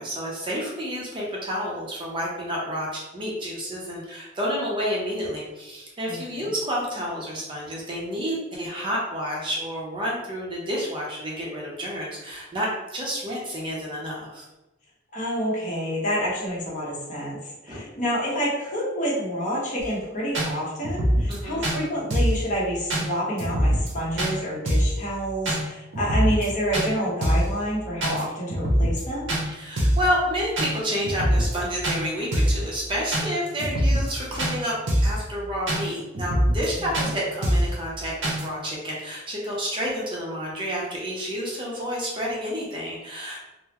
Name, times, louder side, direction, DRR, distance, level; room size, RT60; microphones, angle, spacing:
voice 1, 0.0-14.4 17.7-17.8 21.3-21.6 29.5-43.4, equal, 25° right, -4 dB, 0.6 m, -30 dB
voice 2, 6.1-6.5 15.1-17.4 17.6-29.4 37.0-37.1, equal, 40° left, -6 dB, 1.0 m, -28 dB
sound 1, 19.8-19.9 20.3-20.5 20.8-21.4 21.6-21.8 22.1-22.4 22.9-23.1 23.4-23.9 24.2-24.3 24.7-25.0 25.5-25.6 25.9-26.5 26.7-26.9 27.2-27.5 28.0-28.2 28.5-29.0 29.3-29.4 29.8-30.1 30.6-30.7 31.0-31.6 31.8-32.0 32.3-32.6 33.1-33.3 33.6-34.1 34.4-34.5 34.9-35.2 35.7-35.8 36.1-36.7 36.9-37.1 37.4-37.7 38.2-38.4, equal, 80° right, 0.8 m, -23 dB
3.7 x 2.0 x 2.9 m, 0.99 s
head